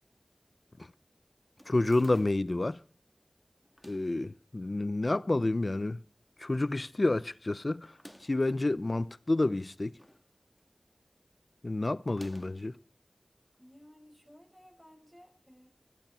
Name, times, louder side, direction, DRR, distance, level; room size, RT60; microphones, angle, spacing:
sound 1, 1.6-2.6 3.6-4.2 5.0-5.6 6.0-6.1 6.3-6.4 7.8-8.5 9.5-10.3 10.6-10.9 12.0-12.7, equal, 5° left, 1.8 m, -54 dB
voice 1, 1.7-2.8 3.8-6.0 6.4-10.0 11.6-12.8, left 2 dB, 55° left, 0.8 m, -29 dB
voice 2, 12.1-12.4 13.6-15.7, equal, 15° right, 5.6 m, -57 dB
20.0 x 14.0 x 4.4 m
wide cardioid pair, 45°, 0 cm